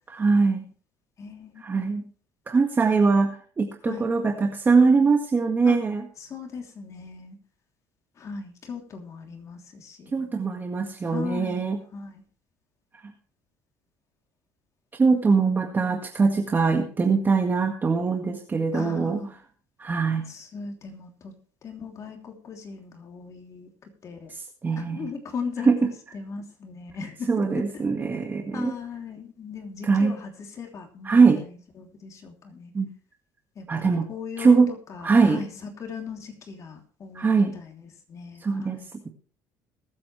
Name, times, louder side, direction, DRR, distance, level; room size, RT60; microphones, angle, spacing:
voice 1, 0.1-0.6 1.6-2.0 2.5-6.0 10.1-11.8 13.0-13.1 15.0-19.2 19.8-20.2 24.3-25.1 25.6-25.7 27.3-28.7 29.8-30.1 31.0-31.4 32.7-32.9 33.7-34.1 34.4-34.7 35.0-35.4 37.1-37.5 38.4-38.8, right 4 dB, 25° right, 3 dB, 1.8 m, -22 dB
voice 2, 1.2-1.8 3.8-4.1 5.6-5.8 6.2-7.4 8.2-10.4 11.0-12.2 18.7-19.3 20.3-21.3 21.6-24.3 24.8-27.8 28.5-32.7 33.5-38.9, left 5 dB, 45° left, 3 dB, 3.1 m, -38 dB
22.0 x 8.6 x 3.3 m, 0.42 s
supercardioid pair, 100°, 8 cm